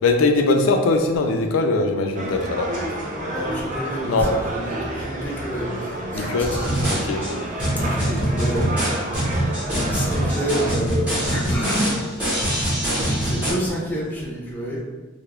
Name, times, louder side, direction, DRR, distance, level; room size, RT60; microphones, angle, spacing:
voice 1, 0.0-2.8 4.0-4.3 6.1-6.6 6.9-7.3, left 3 dB, 75° left, 5 dB, 0.4 m, -21 dB
sound 1, 2.1-10.8, right 1 dB, 40° right, 0.5 m, -30 dB
voice 2, 3.3-6.8 7.8-11.9 12.3-14.8, equal, 10° left, -5 dB, 0.6 m, -29 dB
sound 2, 6.5-13.5, right 1 dB, 10° right, 1.0 m, -24 dB
2.4 x 2.1 x 3.1 m, 1.2 s
head